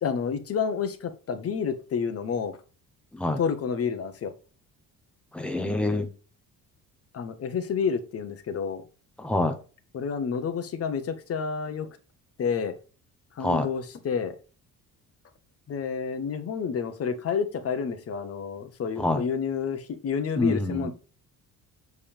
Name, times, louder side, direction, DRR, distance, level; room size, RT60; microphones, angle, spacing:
voice 1, 0.0-2.6 3.4-4.3 7.1-8.8 9.9-11.9 12.4-12.8 13.4-14.3 15.7-20.9, left 6 dB, 40° left, 1.2 m, -29 dB
voice 2, 5.3-6.1 9.2-9.6 13.4-13.7 19.0-19.2 20.4-20.9, left 2 dB, 5° left, 1.0 m, -26 dB
7.2 x 4.0 x 5.0 m
cardioid pair, 160°, 35 cm